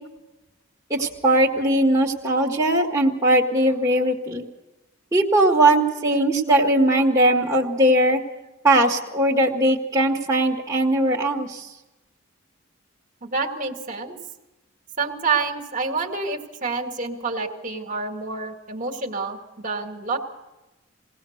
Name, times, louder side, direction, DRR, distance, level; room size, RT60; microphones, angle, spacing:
voice 1, 0.9-4.4 5.1-8.2 8.6-11.7, right 1 dB, 15° right, -3 dB, 1.7 m, -19 dB
voice 2, 13.2-14.2 15.0-20.2, right 4 dB, 40° right, 3 dB, 1.9 m, -28 dB
22.0 x 18.0 x 6.5 m, 1.0 s
head